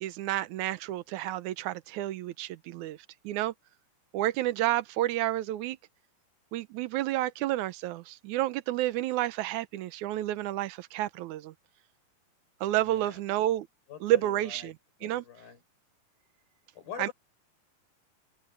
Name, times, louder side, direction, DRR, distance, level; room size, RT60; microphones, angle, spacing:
voice 1, 0.0-3.0 3.2-3.5 4.1-5.8 6.5-11.5 12.6-13.7 14.0-14.8 15.0-15.2 17.0-17.1, right 14 dB, 75° right, 2.0 m, -30 dB
voice 2, 12.9-13.2 13.9-14.7 15.0-15.6 16.8-17.1, left 8 dB, 85° left, 8.0 m, -44 dB
omnidirectional pair, 4.1 m